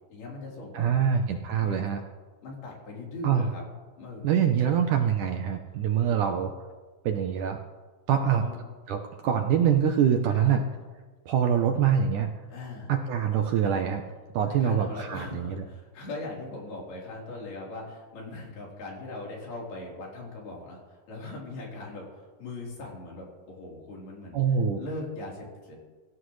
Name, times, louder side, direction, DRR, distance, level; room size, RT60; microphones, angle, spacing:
voice 1, 0.1-1.2 1.6-1.9 2.4-3.6 4.0-4.3 6.0-6.5 8.4-8.6 10.3-10.6 12.5-12.9 14.6-24.4 24.8-25.8, left 2 dB, 75° left, -3 dB, 5.7 m, -40 dB
voice 2, 0.7-2.0 3.2-3.5 4.2-6.5 7.1-7.6 8.1-8.4 8.9-10.6 11.3-12.3 12.9-14.0 14.3-15.6 24.3-24.8, right 8 dB, 75° right, 4 dB, 1.9 m, -24 dB
25.0 x 15.0 x 3.2 m, 1.3 s
omnidirectional pair, 4.4 m